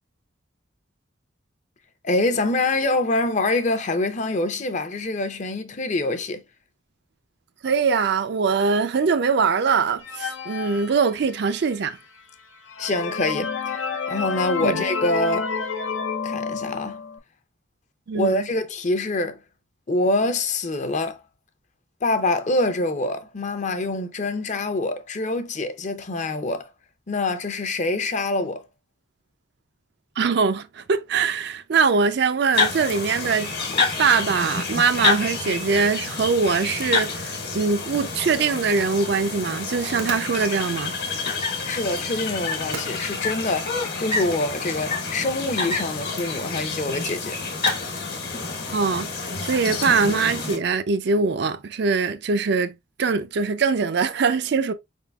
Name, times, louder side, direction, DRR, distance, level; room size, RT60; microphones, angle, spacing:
voice 1, 2.0-6.4 12.8-15.5 16.2-17.0 18.1-19.4 19.9-21.2 22.0-26.7 27.1-28.6 41.6-47.4, left 2 dB, 40° left, 0.6 m, -25 dB
voice 2, 7.6-12.0 14.6-14.8 18.1-18.5 30.2-33.5 34.0-40.9 48.7-49.1 49.4-52.7 53.0-54.7, right 5 dB, 60° right, 0.4 m, -22 dB
sound 1, 10.0-11.6 12.2-12.3 12.7-17.2, left 5 dB, 80° left, 0.6 m, -29 dB
sound 2, 32.5-50.6, left 4 dB, 55° left, 1.2 m, -28 dB
sound 3, 37.8-49.5, right 4 dB, 85° right, 1.1 m, -44 dB
4.7 x 3.6 x 2.2 m
head